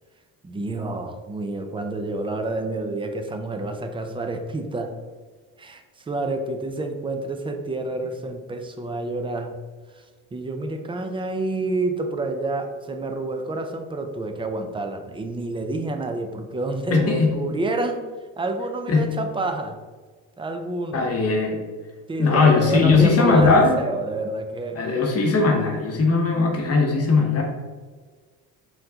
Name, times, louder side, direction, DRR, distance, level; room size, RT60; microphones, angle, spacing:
voice 1, 0.4-5.0 5.6-9.6 9.9-10.0 10.3-18.1 18.4-19.8 20.4-21.1 22.1-24.9, right 2 dB, 15° right, 6 dB, 0.4 m, -28 dB
voice 2, 16.9-17.3 18.9-19.1 20.9-21.6 22.2-23.8 24.7-27.4, left 4 dB, 40° left, -1 dB, 1.0 m, -19 dB
4.4 x 3.8 x 2.8 m, 1.4 s
cardioid pair, 100°, 37 cm